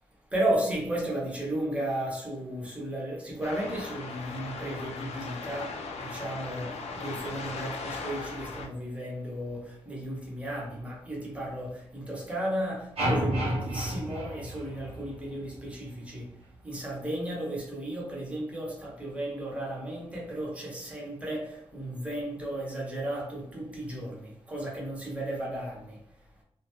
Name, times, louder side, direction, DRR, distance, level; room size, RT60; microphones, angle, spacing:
voice 1, 0.3-26.2, right 1 dB, 10° right, -3 dB, 0.7 m, -34 dB
sound 1, 3.4-8.7, left 4 dB, 85° left, 0.4 m, -38 dB
sound 2, 13.0-15.2, right 1 dB, 70° right, 0.7 m, -30 dB
2.4 x 2.1 x 2.9 m, 0.76 s
wide cardioid pair, 165°, 11 cm